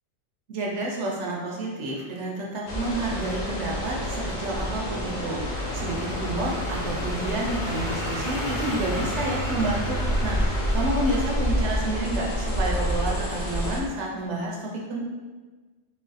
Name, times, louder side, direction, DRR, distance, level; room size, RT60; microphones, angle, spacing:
voice 1, 0.5-15.0, right 1 dB, 85° right, -2 dB, 1.0 m, -30 dB
sound 1, 2.7-13.8, equal, 45° left, 0.8 m, -29 dB
sound 2, 3.3-11.4, equal, 80° left, 1.5 m, -34 dB
3.7 x 2.5 x 3.9 m, 1.3 s
omnidirectional pair, 1.2 m